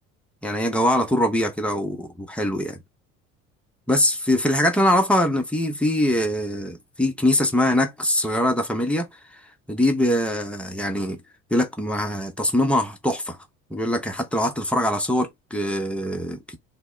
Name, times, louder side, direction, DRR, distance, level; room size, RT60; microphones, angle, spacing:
voice 1, 0.4-2.8 3.9-9.1 9.7-11.2 11.5-13.4 13.7-16.6, left 1 dB, 5° left, 0.6 m, -23 dB
2.1 x 2.0 x 3.6 m
hypercardioid pair, 65°, 42 cm